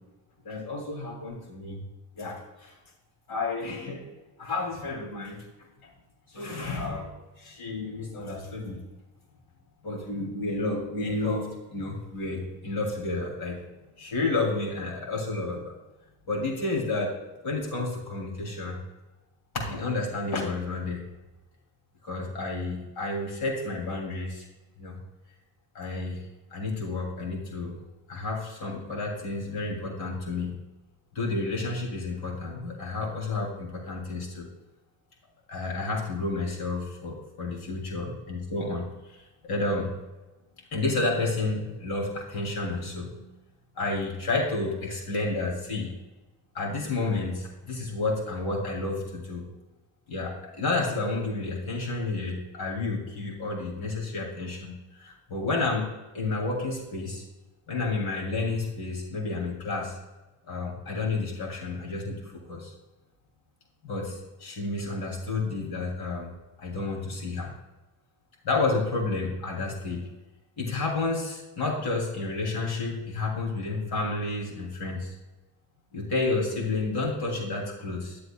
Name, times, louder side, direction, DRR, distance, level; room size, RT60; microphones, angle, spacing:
voice 1, 0.4-1.8 2.2-2.7 3.3-4.0 4.4-5.4 6.3-7.1 7.4-8.8 9.8-13.6 14.0-15.7 16.3-17.1 17.4-18.8 19.5-21.0 22.0-24.4 24.8-25.0 25.7-26.2 26.5-27.8 28.1-30.5 31.1-34.5 35.5-39.9 40.7-43.3 43.8-45.9 46.5-49.5 50.1-55.8 56.1-57.2 57.7-60.0 60.5-62.7 63.8-66.3 66.6-67.5 68.4-70.1 70.6-75.1 75.9-78.2, left 3 dB, 50° left, -2 dB, 3.1 m, -31 dB
11.5 x 7.7 x 2.4 m, 1.1 s
supercardioid pair, 90°, 47 cm